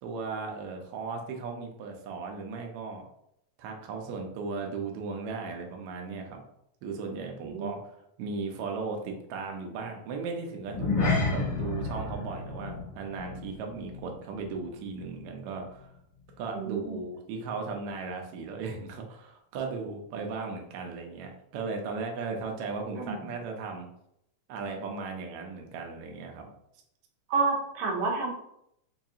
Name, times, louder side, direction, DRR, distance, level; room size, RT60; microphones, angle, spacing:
voice 1, 0.0-3.1 3.6-6.4 6.8-15.9 16.4-23.9 24.5-26.5, right 4 dB, 90° right, 2 dB, 1.3 m, -36 dB
sound 1, 10.6-15.3 15.5-15.8 16.3-16.4, left 3 dB, 60° left, 1.1 m, -32 dB
voice 2, 16.5-17.0 22.9-23.3 27.3-28.3, right 4 dB, 70° right, -1 dB, 1.8 m, -29 dB
5.0 x 2.3 x 2.7 m, 0.77 s
omnidirectional pair, 3.3 m